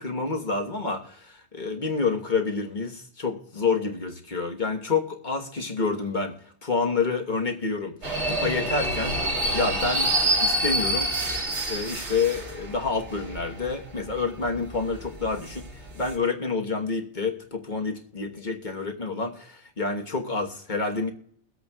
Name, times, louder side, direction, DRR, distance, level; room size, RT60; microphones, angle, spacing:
voice 1, 0.0-6.3 6.6-7.9 8.3-9.2 9.5-11.2 11.7-15.7 15.9-21.1, left 4 dB, 45° left, 2 dB, 1.4 m, -28 dB
sound 1, 8.0-16.1, right 1 dB, 85° right, 2.2 m, -28 dB
23.0 x 8.2 x 2.3 m, 0.63 s
omnidirectional pair, 1.1 m